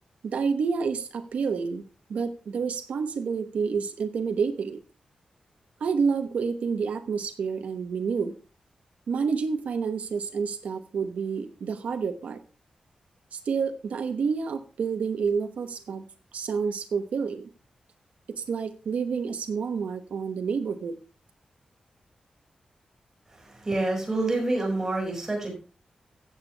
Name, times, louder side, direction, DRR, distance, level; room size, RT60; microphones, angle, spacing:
voice 1, 0.2-1.8 2.1-4.8 5.8-8.3 9.1-12.4 13.3-16.1 16.3-17.5 18.3-20.9, right 5 dB, 90° right, 8 dB, 1.0 m, -29 dB
voice 2, 23.4-25.5, right 2 dB, 25° right, 1 dB, 6.2 m, -27 dB
15.5 x 7.2 x 3.4 m, 0.34 s
wide cardioid pair, 100°, 2 cm